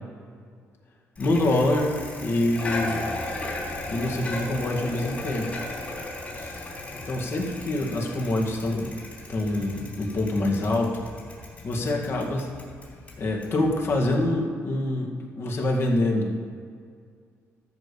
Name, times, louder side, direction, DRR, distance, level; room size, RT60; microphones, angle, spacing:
voice 1, 1.2-1.9 2.2-3.0 3.9-5.5 6.3-6.6 7.1-8.9 9.3-11.0 11.6-12.5 13.2-15.1 15.4-16.4, left 1 dB, 45° left, 0 dB, 2.2 m, -25 dB
Bicycle, 1.2-14.3, left 2 dB, 25° left, 3.4 m, -36 dB
13.5 x 5.3 x 7.1 m, 2.1 s
cardioid pair, 105°, 6 cm